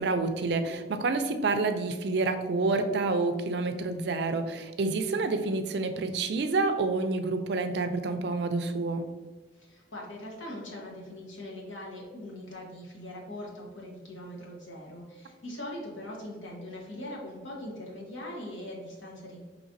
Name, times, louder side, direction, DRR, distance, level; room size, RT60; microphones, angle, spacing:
voice 1, 0.0-9.1, right 3 dB, 55° right, 8 dB, 0.4 m, -28 dB
voice 2, 9.5-19.4, left 1 dB, 80° left, -2 dB, 1.2 m, -41 dB
5.0 x 3.2 x 2.6 m, 1.3 s
head